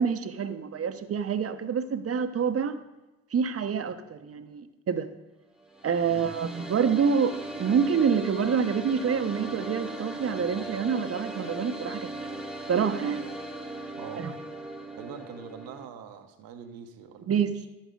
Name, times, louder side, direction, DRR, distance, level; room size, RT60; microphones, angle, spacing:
voice 1, 0.0-2.8 3.3-5.1 5.8-12.4 12.7-13.2 14.2-14.3 17.3-17.5, right 6 dB, 40° right, 10 dB, 0.9 m, -27 dB
sound 1, 5.6-15.9, right 2 dB, ahead, 1.2 m, -38 dB
voice 2, 6.0-6.3 14.0-14.3 15.0-17.7, right 7 dB, 70° right, 6 dB, 1.0 m, -44 dB
11.0 x 8.7 x 3.8 m, 1.1 s
hypercardioid pair, 55°, 36 cm